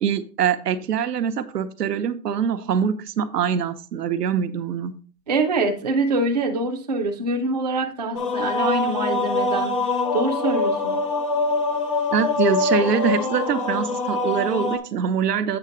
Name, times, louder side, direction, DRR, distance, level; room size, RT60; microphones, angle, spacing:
voice 1, 0.0-4.9 12.1-15.6, right 7 dB, 75° right, 9 dB, 1.0 m, -24 dB
voice 2, 5.3-11.0, right 2 dB, 25° right, 1 dB, 0.5 m, -25 dB
sound 1, 8.1-14.8, left 3 dB, 20° left, 0.6 m, -24 dB
8.0 x 5.7 x 3.8 m, 0.38 s
hypercardioid pair, 175°, 49 cm